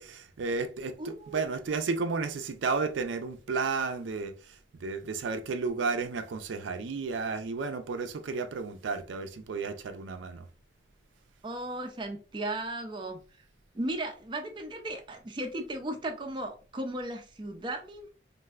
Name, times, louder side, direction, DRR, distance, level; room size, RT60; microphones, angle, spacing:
voice 1, 0.0-10.5, right 4 dB, 85° right, 0.4 m, -33 dB
voice 2, 1.0-1.6 11.4-13.2 13.7-18.1, right 1 dB, 25° right, 0.4 m, -36 dB
3.2 x 2.5 x 2.3 m
head